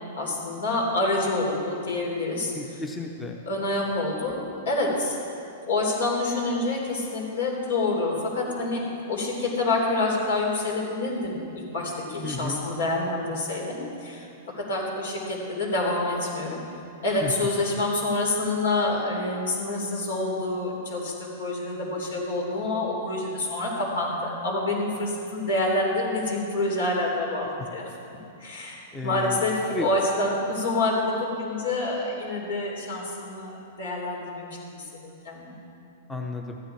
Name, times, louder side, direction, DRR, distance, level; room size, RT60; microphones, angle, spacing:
voice 1, 0.1-2.8 3.4-5.2 5.6-11.4 11.7-14.3 14.5-16.6 17.0-27.4 27.7-27.9 28.4-34.5 35.0-35.5, left 2 dB, 80° left, -2 dB, 3.5 m, -27 dB
voice 2, 2.5-3.4 12.2-12.6 17.2-17.3 28.9-29.4 29.7-29.9 36.1-36.6, left 3 dB, 10° left, 2 dB, 0.7 m, -33 dB
14.0 x 9.7 x 4.6 m, 2.6 s
hypercardioid pair, 150°, 0 cm